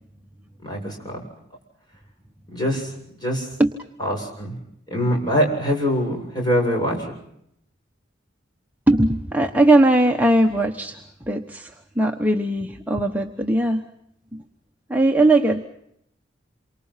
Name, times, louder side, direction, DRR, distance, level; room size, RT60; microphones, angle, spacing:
voice 1, 0.6-1.2 2.5-2.9 3.2-3.5 4.0-4.6 4.9-7.1, equal, 25° left, 1 dB, 7.7 m, -23 dB
voice 2, 8.9-11.0 11.3-13.8 14.3-14.4 14.9-15.6, right 1 dB, 10° right, 2 dB, 1.1 m, -19 dB
28.0 x 24.5 x 5.8 m, 0.75 s
head